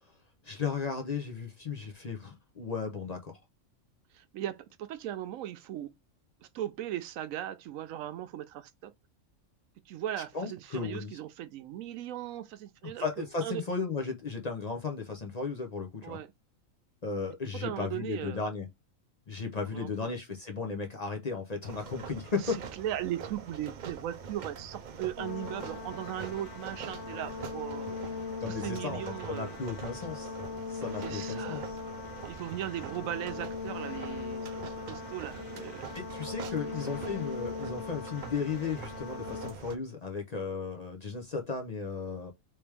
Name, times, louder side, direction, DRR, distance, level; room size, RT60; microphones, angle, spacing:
voice 1, 0.4-3.4 10.3-11.2 13.0-16.2 17.0-18.7 19.3-22.6 28.4-29.0 29.3-30.3 30.7-31.8 35.9-42.3, left 4 dB, 40° left, 0.6 m, -35 dB
voice 2, 4.1-5.9 6.4-8.9 9.9-13.6 16.0-16.3 17.5-18.4 19.7-20.1 22.4-28.0 28.4-29.6 31.0-31.7 32.2-35.8 36.6-36.7 37.0-37.2, right 12 dB, 90° right, 1.0 m, -38 dB
sound 1, 21.6-39.8, right 6 dB, 70° right, 0.4 m, -45 dB
sound 2, 25.2-39.5, left 5 dB, 70° left, 1.1 m, -40 dB
3.2 x 3.1 x 3.3 m
omnidirectional pair, 1.4 m